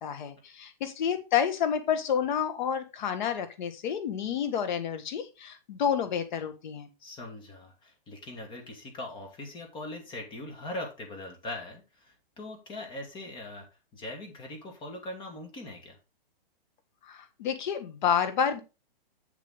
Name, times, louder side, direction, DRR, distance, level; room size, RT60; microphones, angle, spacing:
voice 1, 0.0-6.9 17.0-18.6, left 8 dB, 50° left, 9 dB, 1.7 m, -29 dB
voice 2, 7.0-13.7 13.9-16.0, left 2 dB, 15° left, 2 dB, 1.9 m, -41 dB
7.4 x 7.1 x 3.7 m, 0.29 s
hypercardioid pair, 155°, 30 cm